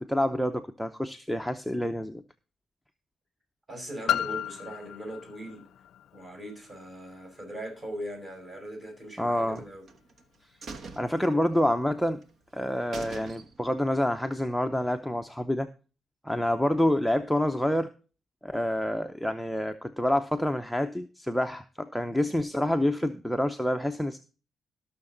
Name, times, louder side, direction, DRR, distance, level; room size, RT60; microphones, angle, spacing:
voice 1, 0.0-2.2 9.2-9.6 11.0-12.2 12.5-15.7 16.2-17.9 18.4-24.2, left 1 dB, ahead, 0.6 m, -27 dB
voice 2, 3.7-5.6 6.1-9.8, right 1 dB, 30° right, 5.7 m, -40 dB
Piano, 4.1-9.5 10.2-10.3, left 10 dB, 85° left, 0.5 m, -36 dB
sound 1, 9.5-10.2 10.6-11.9 12.2-12.3 12.6-12.7 12.9-13.8 14.2-14.3, right 4 dB, 55° right, 1.1 m, -43 dB
18.0 x 6.5 x 3.9 m
cardioid pair, 125°, 0 cm